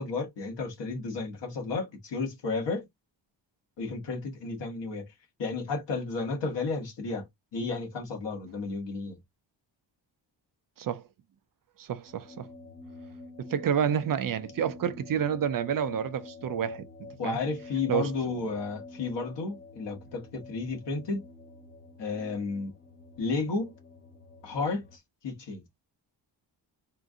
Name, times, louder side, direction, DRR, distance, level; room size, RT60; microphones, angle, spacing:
voice 1, 0.0-2.8 3.8-5.1 5.4-7.3 7.5-9.2 17.2-21.2 22.0-22.7 23.2-23.7 24.4-25.6, left 4 dB, 65° left, 1.7 m, -32 dB
voice 2, 11.8-12.5 13.4-17.4 17.9-18.1, right 8 dB, 50° right, 0.4 m, -29 dB
sound 1, 12.1-25.0, left 3 dB, 25° left, 0.6 m, -48 dB
3.7 x 2.5 x 3.6 m
wide cardioid pair, 180°, 45 cm